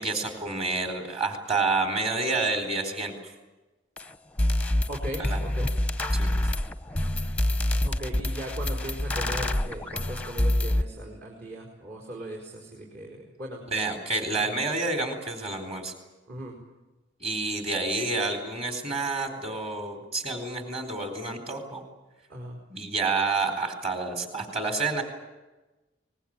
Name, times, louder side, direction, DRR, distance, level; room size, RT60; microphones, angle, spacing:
voice 1, 0.0-3.1 5.2-5.4 6.1-6.3 13.7-15.9 17.2-21.8 22.7-25.0, right 3 dB, 30° right, 6 dB, 4.0 m, -29 dB
sound 1, 4.0-4.1 4.4-10.8, left 1 dB, 5° left, 0.7 m, -26 dB
voice 2, 4.9-5.7 7.8-13.7 14.4-14.5 16.3-16.6 22.3-22.6, right 1 dB, 55° right, -2 dB, 4.8 m, -38 dB
24.0 x 21.0 x 8.9 m, 1.1 s
head